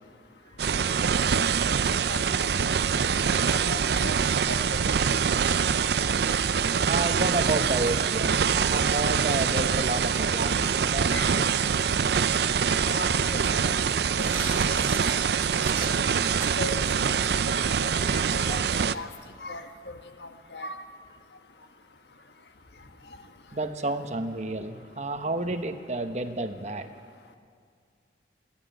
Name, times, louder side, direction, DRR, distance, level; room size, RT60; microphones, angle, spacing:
sound 1, 0.6-18.9, right 6 dB, 65° right, 0.5 m, -24 dB
voice 1, 2.1-2.5 3.6-4.8 11.1-11.3 12.8-13.4 13.6-13.7 14.8-14.9 16.6-18.6 18.9-19.1 19.4-20.8, left 2 dB, 70° left, 7 dB, 1.4 m, -38 dB
voice 2, 6.9-11.1 23.5-26.9, right 2 dB, 40° right, 8 dB, 1.0 m, -30 dB
sound 2, 13.9-16.8, right 2 dB, 15° right, 3.1 m, -38 dB
27.5 x 12.0 x 9.0 m, 2.1 s
head